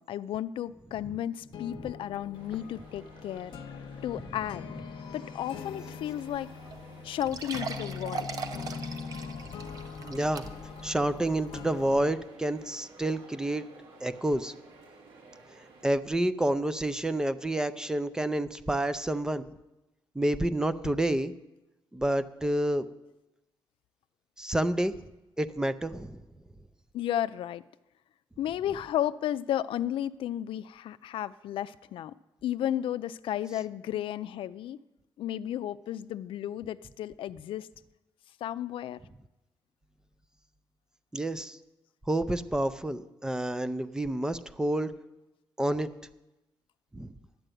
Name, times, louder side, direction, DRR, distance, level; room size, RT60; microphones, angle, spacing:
voice 1, 0.0-3.5 4.0-4.6 5.1-6.5 7.0-8.3 26.9-27.6 28.4-32.1 32.4-34.8 35.2-37.7 38.4-39.0, left 11 dB, 80° left, 14 dB, 0.4 m, -33 dB
sound 1, 1.4-12.1, left 6 dB, 60° left, 0.8 m, -42 dB
sound 2, 2.3-15.9, right 3 dB, 75° right, 2.1 m, -54 dB
sound 3, 6.3-6.4 6.7-6.8 7.2-10.8 11.3-11.4 12.0-12.1, right 5 dB, 45° right, 0.8 m, -39 dB
voice 2, 10.0-10.5 10.8-13.7 14.0-14.5 15.8-19.5 20.2-21.3 21.9-22.9 24.4-24.9 25.4-26.2 41.1-41.6 42.1-44.9 45.6-45.9 46.9-47.1, right 1 dB, 10° right, 13 dB, 0.4 m, -29 dB
12.0 x 7.8 x 9.0 m, 0.99 s
wide cardioid pair, 170°, 9 cm